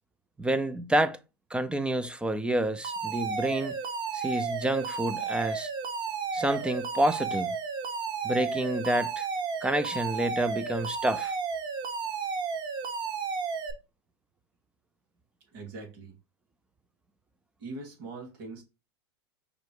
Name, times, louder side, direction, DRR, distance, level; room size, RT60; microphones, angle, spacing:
voice 1, 0.4-1.2 1.5-3.8 4.1-5.7 6.3-7.5 8.2-9.3 9.6-11.3, right 1 dB, 5° right, 0.3 m, -28 dB
Alarm, 2.8-13.7, right 5 dB, 35° right, 0.9 m, -33 dB
voice 2, 15.5-16.2 17.6-18.6, right 3 dB, 55° right, 2.2 m, -42 dB
5.1 x 2.2 x 4.7 m
supercardioid pair, 125°, 14 cm